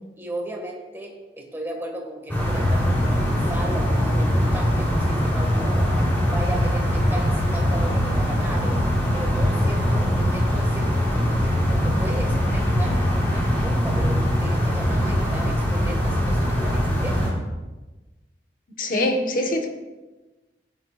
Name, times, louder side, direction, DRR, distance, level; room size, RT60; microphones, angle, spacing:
voice 1, 0.2-5.9 6.3-8.8 9.1-17.3, right 1 dB, 15° right, 0 dB, 1.9 m, -35 dB
sound 1, 2.3-17.3, equal, 10° left, 3.5 m, -22 dB
voice 2, 18.8-19.7, left 1 dB, 50° left, 2 dB, 1.4 m, -23 dB
16.5 x 9.8 x 2.5 m, 1.2 s
head